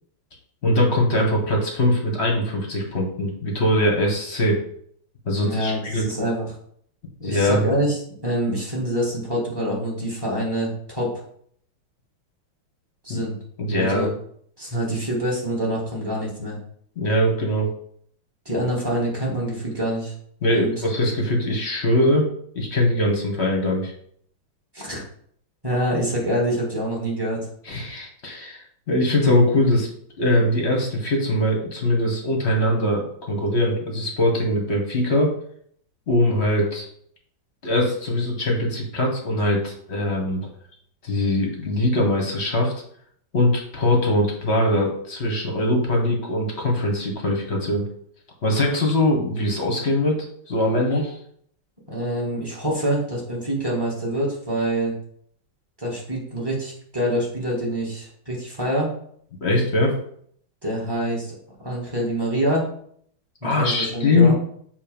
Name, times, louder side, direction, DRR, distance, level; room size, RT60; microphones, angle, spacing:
voice 1, 0.6-4.6 5.2-6.1 7.2-7.7 13.1-13.2 13.6-14.1 17.0-17.7 20.4-22.3 22.5-23.9 27.7-28.6 28.9-29.9 30.2-35.3 36.1-36.8 37.6-40.5 41.0-42.7 43.3-47.8 48.4-51.1 59.4-60.0 63.4-64.3, left 1 dB, 40° left, 0 dB, 1.3 m, -21 dB
voice 2, 5.4-6.4 7.2-11.2 13.0-13.3 13.7-14.1 14.6-16.6 18.5-20.1 20.5-20.7 24.7-25.0 25.6-27.4 51.9-54.9 55.8-58.9 60.6-61.3 61.6-62.7 63.4-64.3, right 1 dB, 10° right, -5 dB, 2.0 m, -26 dB
6.9 x 3.0 x 5.2 m, 0.63 s
omnidirectional pair, 2.2 m